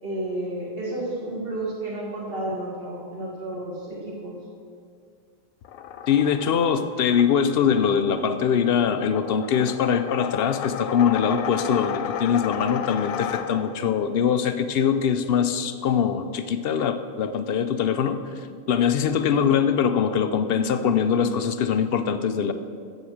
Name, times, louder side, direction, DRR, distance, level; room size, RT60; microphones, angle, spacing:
voice 1, 0.0-4.4, right 1 dB, 45° right, -3 dB, 2.1 m, -31 dB
sound 1, 5.6-13.9, left 8 dB, 85° left, 1.0 m, -34 dB
voice 2, 6.1-22.5, left 7 dB, 60° left, 10 dB, 0.6 m, -23 dB
8.0 x 7.5 x 7.2 m, 2.2 s
omnidirectional pair, 1.4 m